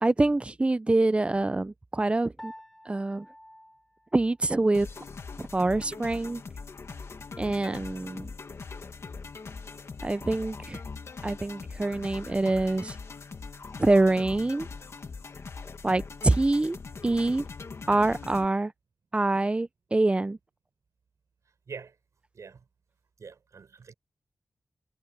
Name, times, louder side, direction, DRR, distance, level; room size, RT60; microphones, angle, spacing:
voice 1, 0.0-2.5 2.9-3.3 4.1-4.9 5.5-6.4 7.4-8.3 10.0-10.8 11.2-12.9 13.8-14.7 15.8-16.8 17.0-17.4 17.9-18.7 19.1-20.4, right 2 dB, 20° right, 0.5 m, -25 dB
Piano, 2.4-4.9, equal, 5° left, 3.8 m, -50 dB
sound 1, 4.7-18.5, left 4 dB, 60° left, 2.0 m, -41 dB
voice 2, 22.3-22.7 23.2-23.9, right 5 dB, 80° right, 6.8 m, -44 dB
wide cardioid pair, 100°, 5 cm